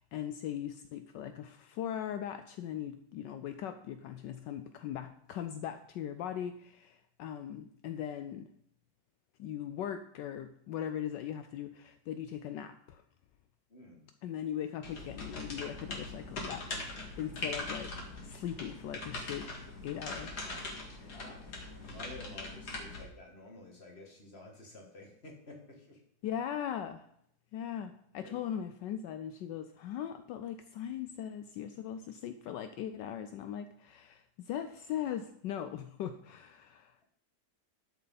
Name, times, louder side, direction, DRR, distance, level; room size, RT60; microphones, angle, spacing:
voice 1, 0.0-8.5 9.4-13.0 14.2-17.9 18.2-19.5 19.8-20.3 20.9-21.2 26.2-27.1 27.5-37.0, left 10 dB, 75° left, 9 dB, 1.2 m, -39 dB
voice 2, 13.7-14.1 21.0-26.0 28.2-28.3, left 2 dB, 35° left, 0 dB, 2.4 m, -51 dB
sound 1, 14.8-23.0, left 2 dB, 55° left, 2.5 m, -41 dB
12.0 x 7.3 x 4.0 m, 0.71 s
omnidirectional pair, 2.1 m